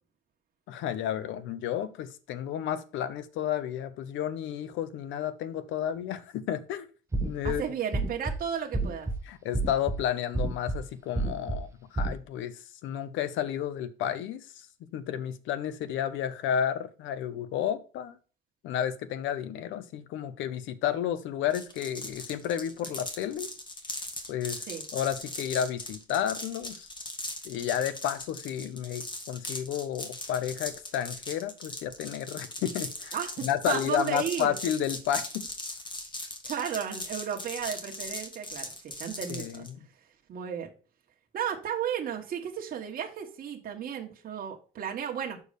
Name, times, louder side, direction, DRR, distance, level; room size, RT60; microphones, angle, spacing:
voice 1, 0.7-6.9 7.2-7.6 9.3-14.5 14.8-18.2 18.6-23.5 24.3-26.9 27.4-33.1 33.4-35.4 39.3-39.8, left 9 dB, 70° left, 0.8 m, -32 dB
sound 1, 7.1-7.5 7.9-8.4 8.7-9.2 9.5-10.0 10.3-10.8 11.2-11.6 12.0-12.2, right 2 dB, 15° right, 0.8 m, -28 dB
voice 2, 7.4-9.1 24.6-24.8 33.1-34.5 36.4-39.6 40.3-40.7 41.3-45.4, right 8 dB, 45° right, 1.3 m, -34 dB
sound 2, 21.5-39.7, left 2 dB, 25° left, 1.5 m, -39 dB
6.5 x 4.6 x 5.1 m
cardioid pair, 115°, 20 cm